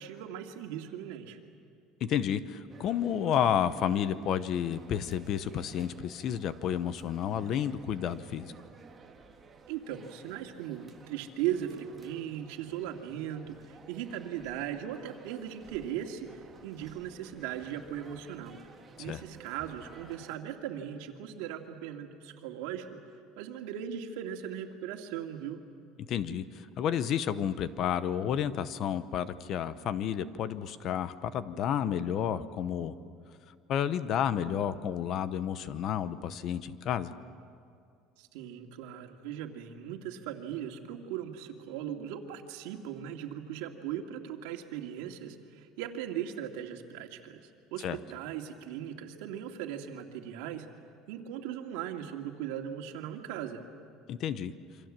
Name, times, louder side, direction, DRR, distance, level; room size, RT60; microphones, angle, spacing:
voice 1, 0.0-1.4 9.7-16.3 16.6-18.6 19.0-22.9 23.4-25.6 38.2-47.4 47.7-50.7 51.1-53.7, right 10 dB, 90° right, 3 dB, 2.3 m, -38 dB
voice 2, 2.0-8.5 19.0-19.2 26.0-32.9 33.7-37.1 47.8-48.0 54.1-54.5, left 9 dB, 40° left, 14 dB, 0.8 m, -31 dB
sound 1, 2.7-20.4, right 4 dB, 15° right, 1.7 m, -55 dB
28.0 x 25.0 x 7.5 m, 2.3 s
cardioid pair, 175°, 0 cm